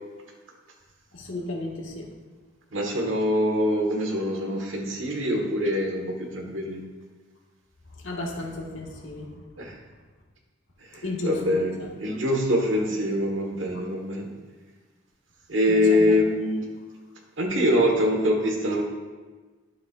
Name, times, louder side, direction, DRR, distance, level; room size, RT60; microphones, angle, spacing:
voice 1, 1.1-2.1 8.0-9.4 11.0-11.9 15.7-16.1, left 1 dB, 80° left, -2 dB, 1.8 m, -33 dB
voice 2, 2.7-6.8 9.6-9.8 10.8-14.3 15.5-16.7 17.4-18.8, left 1 dB, 75° right, 1 dB, 1.5 m, -24 dB
12.0 x 7.3 x 2.5 m, 1.3 s
head